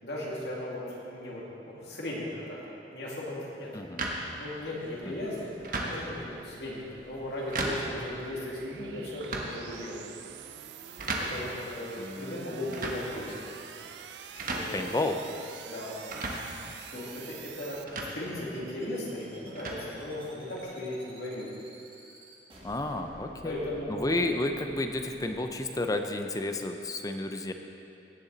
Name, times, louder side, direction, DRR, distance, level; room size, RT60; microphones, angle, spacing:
voice 1, 0.0-2.6 2.9-3.7 4.4-5.5 5.8-10.0 11.3-13.5 14.3-15.0 15.7-16.0 16.9-17.8 18.1-21.5 23.4-24.1, left 1 dB, 65° left, -5 dB, 2.3 m, -37 dB
sound 1, 4.0-20.6, right 2 dB, 50° right, 1.2 m, -39 dB
sound 2, 4.9-17.8, right 9 dB, 75° right, 0.4 m, -48 dB
sound 3, 11.9-12.0 12.3-12.4 12.7-12.8 13.1-13.2 13.5-13.6 13.8-25.9, right 1 dB, 30° right, 1.8 m, -52 dB
voice 2, 12.0-12.8 14.7-15.2 22.6-23.6 23.9-27.5, left 2 dB, 20° left, 5 dB, 0.6 m, -32 dB
17.0 x 7.1 x 4.0 m, 2.7 s
head